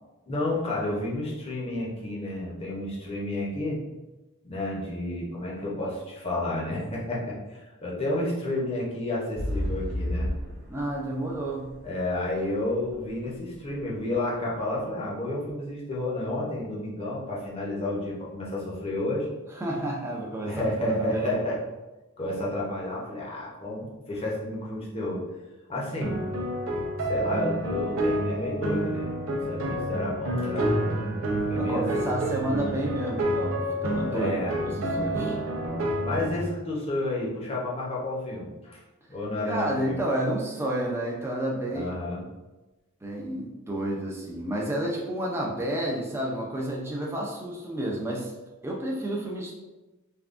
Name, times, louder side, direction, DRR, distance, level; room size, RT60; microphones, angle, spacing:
voice 1, 0.3-3.8 4.4-10.3 11.8-19.3 20.4-21.6 22.2-25.2 25.7-26.1 27.1-31.2 31.5-32.1 34.1-34.6 36.0-38.8 39.1-40.0 41.7-42.2, left 1 dB, 25° left, -5 dB, 0.7 m, -31 dB
sound 1, 9.4-13.2 13.8-13.9, equal, 40° right, 0.8 m, -31 dB
voice 2, 10.7-11.7 19.6-21.4 31.6-34.3 34.6-35.4 39.4-41.9 43.0-48.3 48.6-49.5, right 1 dB, 10° right, -2 dB, 0.4 m, -30 dB
sound 2, 26.0-36.4, right 1 dB, 60° right, 0.5 m, -29 dB
3.5 x 2.2 x 2.5 m, 1.1 s
head